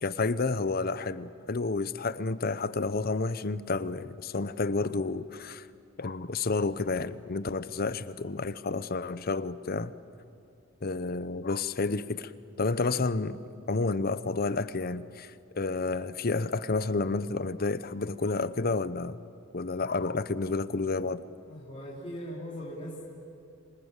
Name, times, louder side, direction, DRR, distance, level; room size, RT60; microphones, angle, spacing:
voice 1, 0.0-5.7 6.0-9.9 10.8-12.3 12.6-13.4 13.7-19.2 19.5-21.2, left 3 dB, 50° left, 0.8 m, -30 dB
voice 2, 21.5-23.0, equal, 30° left, 3.8 m, -40 dB
27.5 x 25.0 x 8.2 m
head